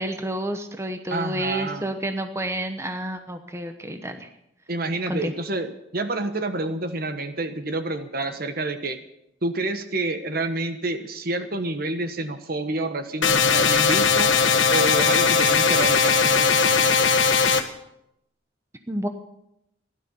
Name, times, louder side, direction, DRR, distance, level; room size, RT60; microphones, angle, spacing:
voice 1, 0.0-4.3 5.1-5.3 18.9-19.1, right 1 dB, 15° right, 7 dB, 1.0 m, -29 dB
voice 2, 1.1-1.9 4.7-9.0 9.4-14.3 14.7-17.1, right 2 dB, 50° right, 9 dB, 1.3 m, -28 dB
sound 1, 13.2-17.6, left 5 dB, 80° left, 1.4 m, -19 dB
16.0 x 12.0 x 7.1 m, 0.82 s
head